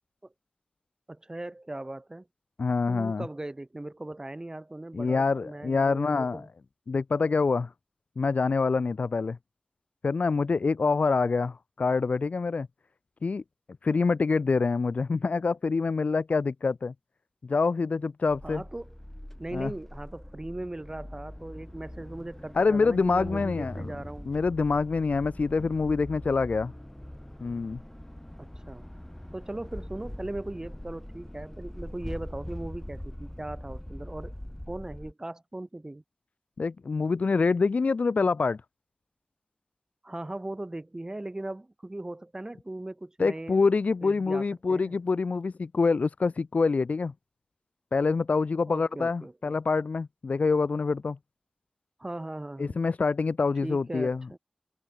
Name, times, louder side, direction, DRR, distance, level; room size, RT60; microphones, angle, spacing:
voice 1, 1.1-2.3 2.9-6.5 18.4-18.9 19.4-24.3 28.4-28.9 29.3-34.3 34.7-36.0 40.0-43.6 44.0-45.0 48.7-49.5 52.0-52.8 53.6-54.4, right 1 dB, 30° right, 1.0 m, -39 dB
voice 2, 2.6-3.3 4.9-6.5 6.9-7.7 8.2-9.4 10.0-12.7 13.2-13.4 13.8-16.9 17.4-18.6 19.5-19.7 22.5-23.9 24.2-26.7 27.4-27.8 36.6-38.6 43.2-47.1 47.9-51.2 52.6-54.3, left 4 dB, 85° left, 0.5 m, -26 dB
sound 1, 18.3-35.1, left 1 dB, 10° left, 3.7 m, -42 dB
wide cardioid pair, 65°, 2 cm